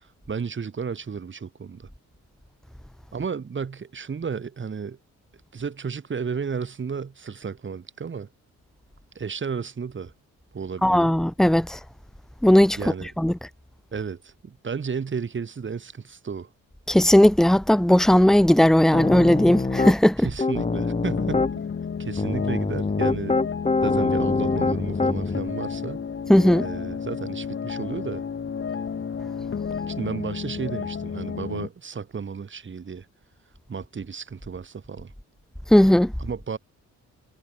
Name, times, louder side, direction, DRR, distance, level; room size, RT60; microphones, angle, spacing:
voice 1, 0.0-1.9 3.1-5.0 5.5-8.3 9.2-10.1 10.5-11.1 12.8-13.1 13.9-16.5 20.2-21.6 22.0-23.4 23.8-26.0 26.6-28.2 29.9-33.1 33.7-35.1 36.2-36.6, right 6 dB, 40° right, 7.2 m, -33 dB
voice 2, 10.8-11.8 12.4-12.8 13.2-13.3 16.9-20.3 26.3-26.6 35.7-36.1, left 1 dB, ahead, 1.2 m, -17 dB
Piano, 18.9-20.0 20.4-21.5 22.2-25.4, left 3 dB, 20° left, 4.0 m, -24 dB
sound 1, 20.6-31.7, left 6 dB, 40° left, 3.8 m, -32 dB
cardioid pair, 90°, 30 cm